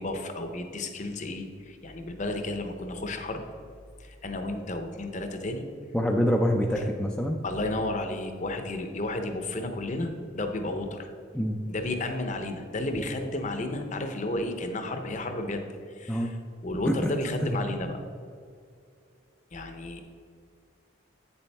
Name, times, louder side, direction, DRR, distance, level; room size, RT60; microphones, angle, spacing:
voice 1, 0.0-3.4 4.0-5.7 7.4-11.1 11.7-15.6 15.9-18.0 19.5-20.0, left 2 dB, 40° left, 6 dB, 0.7 m, -32 dB
voice 2, 5.9-7.4 11.3-11.6 16.1-16.3 16.9-17.1 17.4-17.6, equal, 5° left, 0 dB, 0.4 m, -25 dB
8.7 x 7.0 x 3.4 m, 2.3 s
head